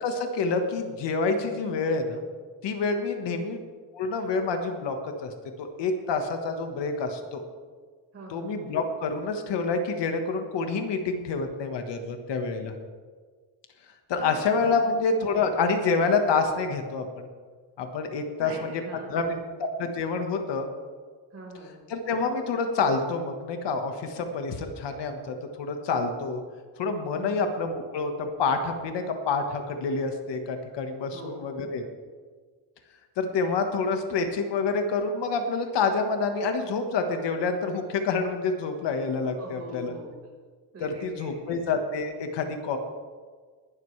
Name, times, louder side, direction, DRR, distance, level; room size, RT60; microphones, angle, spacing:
voice 1, 0.0-2.3 2.6-3.6 3.9-5.3 5.6-7.4 8.3-12.7 14.1-17.3 17.8-18.7 19.1-20.7 21.9-26.4 26.8-31.8 33.2-39.9 40.8-42.8, left 4 dB, 65° left, 5 dB, 1.5 m, -27 dB
voice 2, 3.2-3.5 8.1-8.6 14.2-14.5 14.8-15.0 18.4-19.5 21.3-21.8 27.1-27.5 31.1-31.6 39.4-40.3 40.7-41.6, right 1 dB, 30° right, -2 dB, 4.4 m, -42 dB
20.0 x 12.0 x 3.3 m, 1.5 s
cardioid pair, 175°, 46 cm